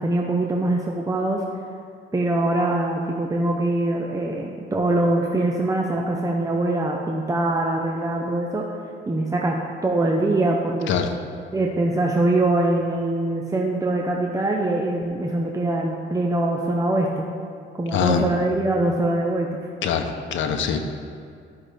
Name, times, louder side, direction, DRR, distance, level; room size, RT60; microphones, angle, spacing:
voice 1, 0.0-1.4 2.1-8.7 9.1-9.6 9.8-10.9 11.5-17.2 17.7-19.6, right 2 dB, 15° right, 0 dB, 0.8 m, -23 dB
voice 2, 17.9-18.2 19.8-20.8, left 7 dB, 75° left, 6 dB, 0.7 m, -23 dB
12.5 x 5.8 x 3.4 m, 2.3 s
cardioid pair, 90°, 20 cm